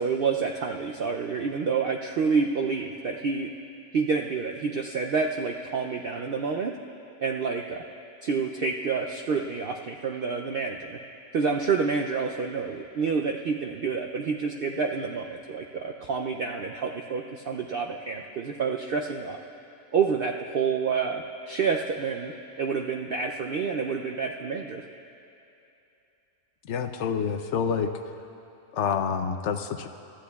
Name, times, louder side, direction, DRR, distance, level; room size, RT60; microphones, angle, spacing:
voice 1, 0.0-3.5 3.9-6.7 7.2-7.8 8.2-11.0 11.3-19.4 19.9-24.8, right 5 dB, 90° right, 2 dB, 0.5 m, -28 dB
voice 2, 26.6-28.2 28.7-29.9, left 6 dB, 65° left, 8 dB, 0.8 m, -28 dB
23.5 x 13.0 x 2.3 m, 2.8 s
omnidirectional pair, 1.5 m